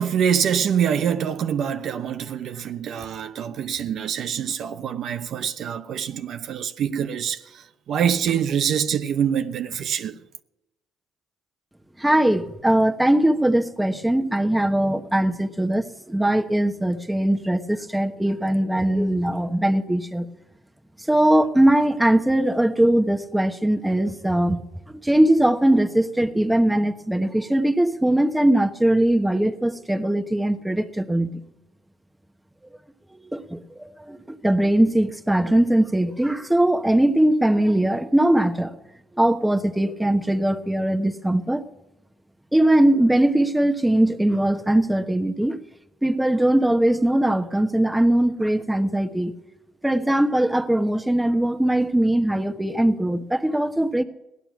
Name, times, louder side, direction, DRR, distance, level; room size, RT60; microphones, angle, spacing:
voice 1, 0.0-10.2, right 8 dB, 65° right, 0.9 m, -25 dB
voice 2, 12.0-20.3 21.1-24.6 25.0-31.4 33.1-38.7 39.2-41.6 42.5-45.6 46.0-49.3 49.8-54.0, right 1 dB, 5° right, 1.2 m, -20 dB
17.0 x 11.0 x 6.0 m
cardioid pair, 90°, 0 cm